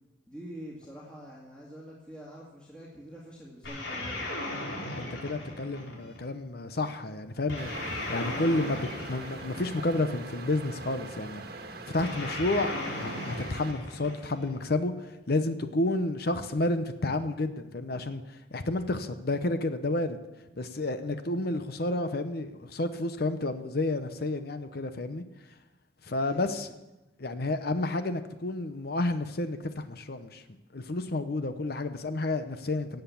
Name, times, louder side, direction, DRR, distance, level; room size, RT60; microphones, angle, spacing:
voice 1, 0.3-4.3 26.2-26.6, equal, 5° left, -5 dB, 2.1 m, -45 dB
sound 1, 3.6-6.2 7.5-10.1 12.0-14.6, left 1 dB, 85° left, 4.5 m, -37 dB
voice 2, 5.0-7.7 8.1-11.4 11.9-20.2 20.6-25.2 26.0-26.7 27.2-30.4 30.7-33.0, left 2 dB, 55° left, 9 dB, 0.8 m, -30 dB
sound 2, 7.6-13.7, right 2 dB, 55° right, 1.5 m, -42 dB
17.0 x 8.1 x 7.1 m, 1.0 s
head